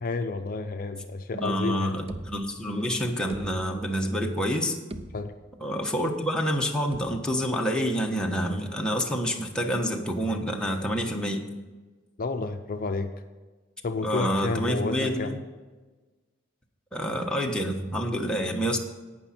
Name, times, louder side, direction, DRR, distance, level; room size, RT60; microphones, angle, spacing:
voice 1, 0.0-1.9 5.1-5.3 12.2-13.1 13.8-15.4, left 3 dB, 45° left, 6 dB, 0.6 m, -30 dB
voice 2, 1.3-4.8 5.6-11.5 14.0-15.4 16.9-18.8, equal, 5° left, 0 dB, 1.2 m, -28 dB
sound 1, 2.1-2.8 3.3-4.1 4.5-4.6 4.9-5.7 6.9-7.6, right 1 dB, 30° right, 0.6 m, -42 dB
17.5 x 6.1 x 4.3 m, 1.3 s
head